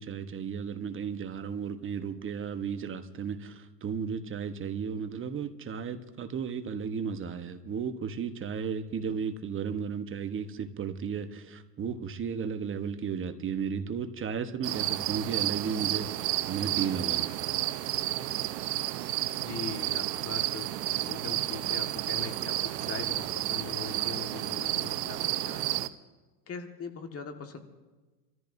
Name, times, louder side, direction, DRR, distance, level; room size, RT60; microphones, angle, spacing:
voice 1, 0.0-17.3, right 6 dB, 25° right, 9 dB, 1.2 m, -34 dB
sound 1, 14.6-25.9, right 15 dB, 75° right, 0.9 m, -31 dB
voice 2, 19.4-20.7 21.1-25.8 26.5-27.6, left 5 dB, 30° left, 5 dB, 1.8 m, -41 dB
27.0 x 14.0 x 2.7 m, 1.2 s
hypercardioid pair, 105°, 48 cm